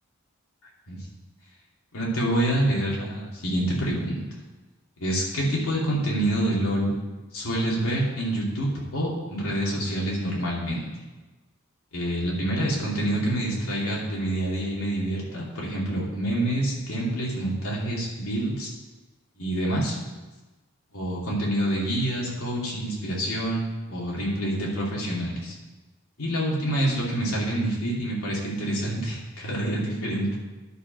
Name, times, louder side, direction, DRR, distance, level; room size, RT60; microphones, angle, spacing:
voice 1, 1.9-4.2 5.0-6.9 7.3-10.9 11.9-18.7 19.4-20.0 20.9-25.5 26.2-30.3, right 1 dB, 75° left, -4 dB, 2.6 m, -27 dB
11.0 x 5.1 x 5.2 m, 1.2 s
head